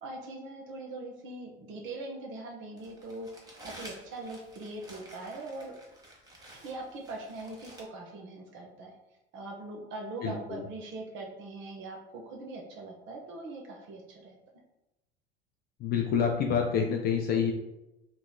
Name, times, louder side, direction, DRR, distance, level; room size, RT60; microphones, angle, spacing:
voice 1, 0.0-5.7 6.6-8.9 9.3-14.4, right 2 dB, 40° right, 0 dB, 0.6 m, -41 dB
Crumpling crinkling, 2.8-7.8, right 1 dB, 15° right, 0.8 m, -51 dB
voice 2, 10.2-10.6 15.8-17.5, left 7 dB, 35° left, 1 dB, 0.4 m, -27 dB
3.0 x 2.9 x 2.2 m, 0.96 s
figure-of-eight pair, 70°, 29 cm